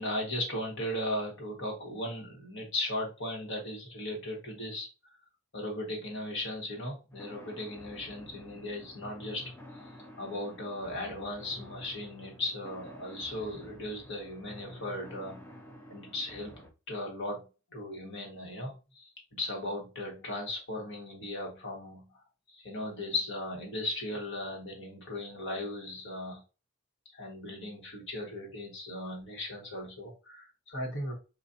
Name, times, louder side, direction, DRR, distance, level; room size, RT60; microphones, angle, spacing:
voice 1, 0.0-5.2 5.5-9.9 10.2-15.5 15.9-26.4 27.1-31.1, left 1 dB, 60° left, 0 dB, 1.4 m, -37 dB
sound 1, 7.1-16.7, left 1 dB, 10° left, 0.5 m, -50 dB
4.0 x 2.5 x 2.6 m, 0.31 s
head